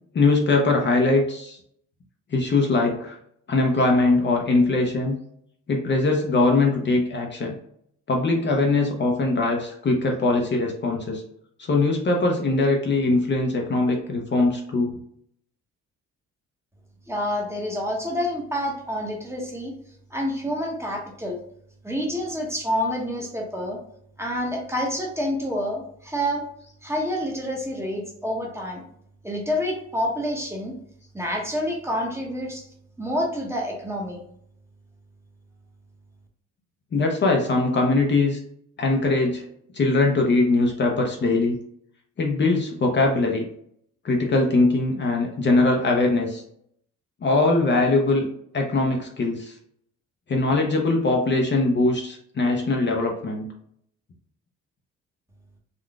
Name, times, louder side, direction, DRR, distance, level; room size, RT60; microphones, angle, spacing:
voice 1, 0.1-1.6 2.3-3.2 3.5-5.2 5.7-7.5 8.1-11.2 11.6-15.0 36.9-38.4 38.8-39.4 39.7-41.6 42.2-43.4 44.0-46.4 47.2-48.3 48.5-49.6 50.3-53.5, left 2 dB, 35° left, 1 dB, 0.6 m, -21 dB
voice 2, 17.1-19.7 20.1-21.4 21.8-23.8 24.2-26.4 26.8-28.8 29.2-30.7 31.1-32.7 33.0-34.2, equal, 10° right, 0 dB, 0.9 m, -28 dB
3.7 x 2.3 x 2.3 m, 0.70 s
cardioid pair, 90°, 30 cm